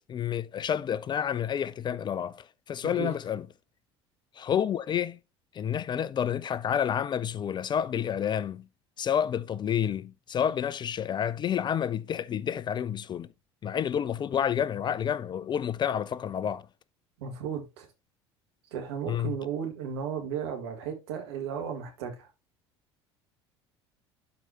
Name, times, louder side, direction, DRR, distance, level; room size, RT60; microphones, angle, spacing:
voice 1, 0.1-3.5 4.4-5.2 5.5-8.6 9.0-13.3 13.6-16.6 19.1-19.4, left 9 dB, 30° left, 0.5 m, -29 dB
voice 2, 17.2-17.9 18.7-22.3, right 7 dB, 70° right, 1.9 m, -35 dB
12.0 x 4.7 x 2.8 m
figure-of-eight pair, 65°, 14 cm